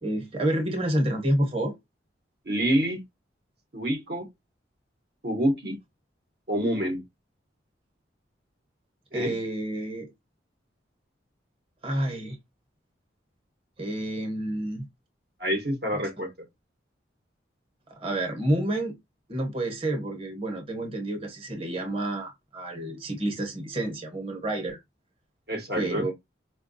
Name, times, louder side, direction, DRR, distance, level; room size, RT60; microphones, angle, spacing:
voice 1, 0.0-1.7 9.1-10.1 11.8-12.4 13.8-14.9 18.0-18.9 19.3-24.8 25.7-26.1, right 1 dB, 30° right, 0.9 m, -29 dB
voice 2, 2.5-3.0 3.7-4.3 5.2-5.8 6.5-7.0 9.1-9.3 15.4-16.3 25.5-26.1, equal, 55° right, 0.8 m, -27 dB
4.4 x 2.3 x 2.5 m
head